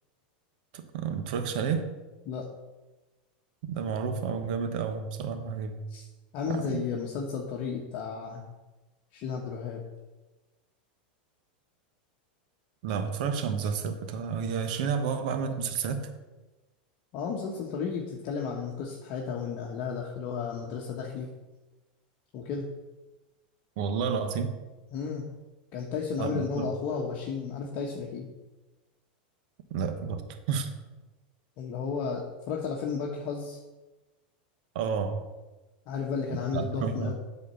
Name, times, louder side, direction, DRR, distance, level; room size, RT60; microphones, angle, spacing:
voice 1, 0.7-1.9 3.6-5.8 6.5-6.8 12.8-16.1 23.8-24.5 26.2-26.7 29.7-30.7 34.7-35.2 36.5-37.1, right 6 dB, 60° right, 7 dB, 1.1 m, -30 dB
voice 2, 6.3-8.4 9.1-9.8 17.1-21.3 22.3-22.6 24.9-25.2 25.7-28.3 31.6-33.6 35.9-37.1, left 6 dB, 45° left, -1 dB, 1.2 m, -33 dB
8.8 x 4.3 x 6.9 m, 1.1 s
supercardioid pair, 150°, 5 cm